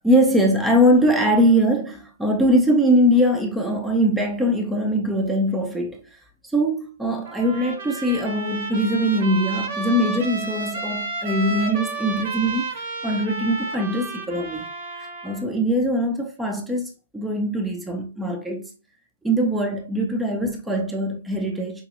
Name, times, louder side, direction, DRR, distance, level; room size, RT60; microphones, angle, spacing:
voice 1, 0.0-6.2 6.4-14.7 15.0-18.7 19.2-21.9, equal, 5° right, 0.5 m, -22 dB
Trumpet, 7.3-15.4, right 3 dB, 55° right, 1.0 m, -31 dB
4.9 x 2.2 x 2.9 m
hypercardioid pair, 140°, 0 cm